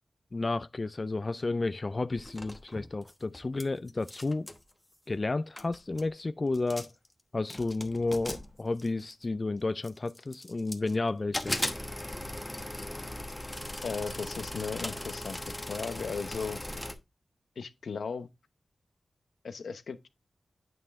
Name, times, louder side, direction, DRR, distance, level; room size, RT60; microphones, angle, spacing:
voice 1, 0.3-4.5 5.1-6.9 7.3-11.6, left 3 dB, 35° left, 0.3 m, -32 dB
sound 1, 2.2-3.6 3.9-4.6 5.3-5.4 5.6-6.1 6.5-7.1 7.5-9.3 9.8-11.0 11.3-17.0, left 1 dB, 10° left, 1.0 m, -38 dB
voice 2, 13.8-15.4 15.7-16.6 17.6-18.3 19.4-20.1, left 5 dB, 85° left, 0.9 m, -36 dB
9.2 x 5.6 x 3.5 m
wide cardioid pair, 125°, 0 cm